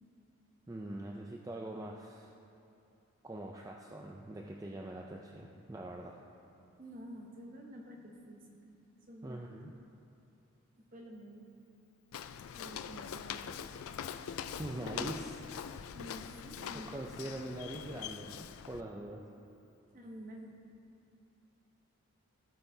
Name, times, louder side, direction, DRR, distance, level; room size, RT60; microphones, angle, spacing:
voice 1, 0.7-2.3 3.2-6.2 9.2-9.7 14.6-15.7 16.7-19.3, right 1 dB, 15° right, 0 dB, 0.3 m, -43 dB
voice 2, 6.8-8.8 9.1-9.5 10.8-11.5 12.5-13.5 15.9-16.9 19.9-20.6, equal, 40° right, 0 dB, 1.0 m, -49 dB
Walk footsteps, 12.1-18.8, left 8 dB, 85° left, 0.3 m, -43 dB
16.5 x 5.7 x 2.7 m, 2.8 s
head